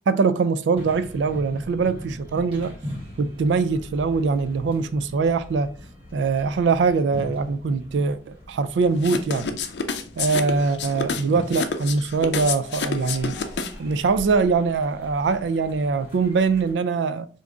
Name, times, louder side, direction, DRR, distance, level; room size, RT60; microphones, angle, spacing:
voice 1, 0.1-2.8 3.2-5.7 6.1-9.5 10.2-13.4 13.8-17.3, right 4 dB, 80° right, 0.4 m, -22 dB
sound 1, 0.7-16.7, equal, 30° right, 1.8 m, -41 dB
sound 2, 9.0-13.9, left 5 dB, 70° left, 0.5 m, -28 dB
3.5 x 2.6 x 3.6 m
head